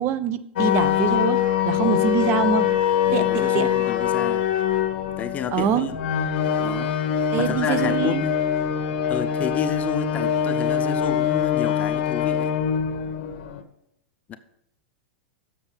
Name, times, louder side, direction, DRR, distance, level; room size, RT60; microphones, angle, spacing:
voice 1, 0.0-2.7 3.1-3.7 5.5-5.9 7.3-8.2, right 8 dB, 40° right, 14 dB, 0.5 m, -24 dB
sound 1, 0.6-13.6, left 9 dB, 60° left, 1.0 m, -23 dB
voice 2, 3.1-4.5 5.2-6.0 6.6-6.9 7.4-8.4 9.1-12.5 14.3-14.4, left 7 dB, 25° left, 9 dB, 0.6 m, -31 dB
7.2 x 6.8 x 5.5 m, 0.75 s
hypercardioid pair, 130°, 6 cm